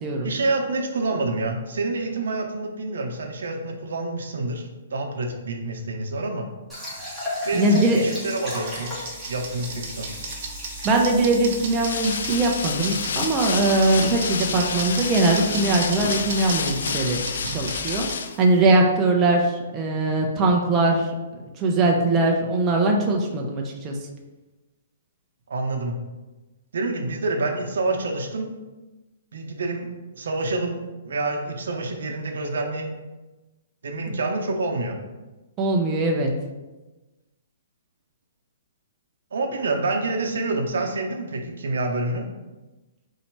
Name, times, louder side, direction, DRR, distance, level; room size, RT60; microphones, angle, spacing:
voice 1, 0.2-6.5 7.4-8.9 9.3-10.2 25.5-26.0 26.7-28.5 29.3-29.9 30.1-32.9 33.8-35.0 39.3-42.3, right 2 dB, 80° right, 3 dB, 0.8 m, -27 dB
sound 1, 6.7-18.6, left 1 dB, 5° left, 1.4 m, -37 dB
voice 2, 7.5-8.0 10.8-17.2 17.5-18.1 18.4-21.1 21.6-24.0 35.6-36.3, right 2 dB, 20° right, 0 dB, 0.5 m, -21 dB
sound 2, 7.9-18.1, right 4 dB, 50° right, 0.8 m, -36 dB
sound 3, 11.7-18.4, left 6 dB, 70° left, 0.4 m, -29 dB
4.1 x 2.7 x 4.5 m, 1.1 s
hypercardioid pair, 160°, 0 cm